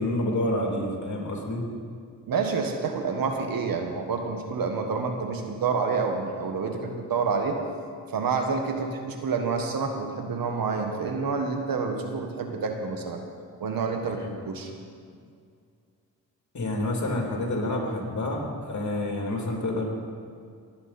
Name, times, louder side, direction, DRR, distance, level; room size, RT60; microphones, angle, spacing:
voice 1, 0.0-1.6 14.2-14.3 16.5-19.8, left 1 dB, 50° left, 0 dB, 2.9 m, -28 dB
voice 2, 2.3-7.5 8.1-13.2 13.6-14.2 14.4-14.7, right 5 dB, 70° right, 4 dB, 1.5 m, -28 dB
18.5 x 8.8 x 4.3 m, 2.2 s
cardioid pair, 55°, 36 cm